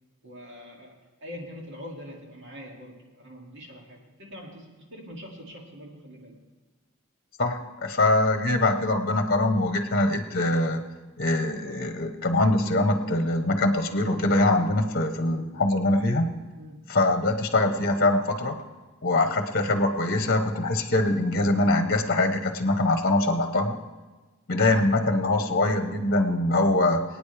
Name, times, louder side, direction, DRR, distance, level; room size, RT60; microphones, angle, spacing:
voice 1, 0.2-6.4 16.5-16.9, equal, 60° right, -1 dB, 2.5 m, -43 dB
voice 2, 7.4-10.8 11.2-16.3 16.9-18.5 19.0-23.8 24.5-27.0, left 2 dB, 45° left, 6 dB, 1.0 m, -23 dB
23.5 x 9.3 x 3.4 m, 1.3 s
head